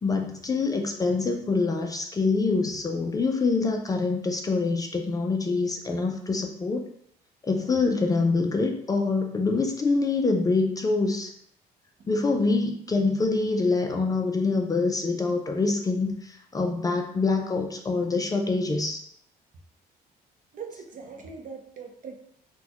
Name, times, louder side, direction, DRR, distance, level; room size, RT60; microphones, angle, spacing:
voice 1, 0.0-6.8 7.4-11.3 12.1-19.0, left 3 dB, 20° left, 2 dB, 0.4 m, -25 dB
voice 2, 20.5-22.2, right 5 dB, 50° right, 3 dB, 0.6 m, -41 dB
4.1 x 2.2 x 2.9 m, 0.70 s
cardioid pair, 110°, 17 cm